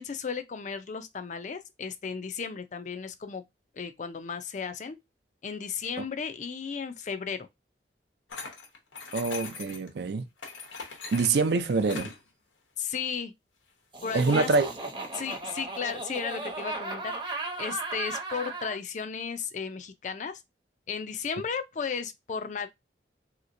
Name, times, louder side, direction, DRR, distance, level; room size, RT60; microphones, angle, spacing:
voice 1, 0.0-3.4 3.8-5.0 5.4-7.5 12.8-13.3 14.0-14.5 15.1-20.4 20.9-22.7, left 6 dB, 40° left, 0.4 m, -34 dB
sound 1, 8.3-9.9 10.4-12.2, left 4 dB, 85° left, 0.9 m, -40 dB
voice 2, 9.1-10.2 11.1-12.1 14.1-14.7, right 4 dB, 65° right, 0.4 m, -25 dB
Laughter, 13.9-18.8, right 3 dB, 25° right, 0.7 m, -36 dB
3.2 x 2.9 x 2.5 m
head